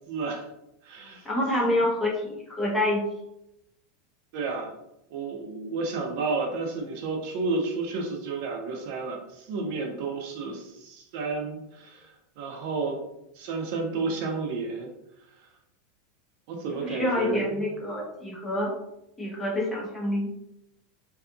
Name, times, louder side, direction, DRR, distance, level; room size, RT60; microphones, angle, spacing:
voice 1, 0.1-0.5 0.8-1.3 4.3-4.7 5.1-13.0 13.4-14.9 16.5-17.5, right 3 dB, 55° right, 2 dB, 0.5 m, -31 dB
voice 2, 1.2-3.1 16.8-18.7 19.2-20.3, left 1 dB, 15° left, -3 dB, 0.7 m, -27 dB
2.7 x 2.4 x 2.4 m, 0.85 s
supercardioid pair, 150°, 0 cm